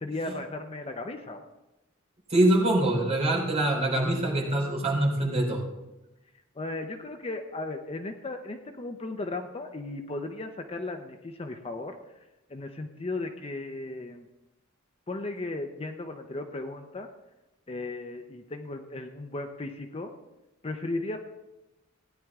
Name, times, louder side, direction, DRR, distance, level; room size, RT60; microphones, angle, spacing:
voice 1, 0.0-1.4 6.6-12.0 12.5-14.3 15.1-17.1 17.7-20.1 20.6-21.2, left 2 dB, 30° left, 5 dB, 0.7 m, -36 dB
voice 2, 2.3-5.6, right 1 dB, 30° right, -2 dB, 3.5 m, -24 dB
16.5 x 10.0 x 3.6 m, 0.99 s
head